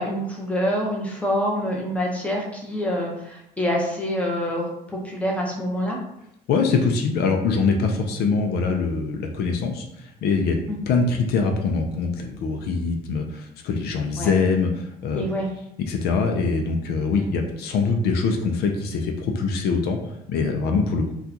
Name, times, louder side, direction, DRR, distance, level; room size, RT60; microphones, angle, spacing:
voice 1, 0.0-6.0 10.7-10.8 14.2-14.3 15.1-15.5 17.2-17.3, equal, 10° left, -1 dB, 0.8 m, -26 dB
voice 2, 6.5-10.6 10.9-15.3 15.8-21.1, left 4 dB, 70° left, 3 dB, 0.5 m, -23 dB
3.7 x 2.4 x 2.8 m, 0.79 s
cardioid pair, 110°, 17 cm